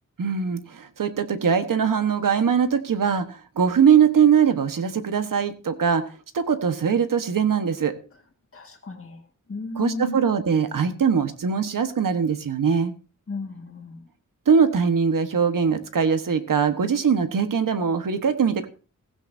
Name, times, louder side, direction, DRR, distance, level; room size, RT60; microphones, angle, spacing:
voice 1, 0.2-6.1 6.3-8.0 9.8-12.9 14.5-18.7, right 7 dB, 75° right, 9 dB, 1.4 m, -21 dB
voice 2, 8.5-9.2 9.5-10.2 13.3-14.0, left 2 dB, 40° left, 1 dB, 1.9 m, -34 dB
16.0 x 15.5 x 2.7 m, 0.36 s
wide cardioid pair, 155°, 33 cm